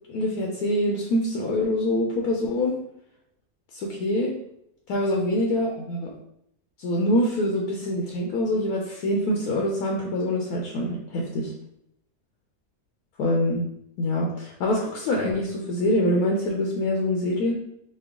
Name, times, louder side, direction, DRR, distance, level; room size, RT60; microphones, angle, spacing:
voice 1, 0.1-2.8 3.7-4.3 4.9-6.1 6.8-11.5 13.2-13.6 14.0-17.5, left 1 dB, 75° left, -1 dB, 1.1 m, -25 dB
4.4 x 2.2 x 3.6 m, 0.76 s
omnidirectional pair, 1.7 m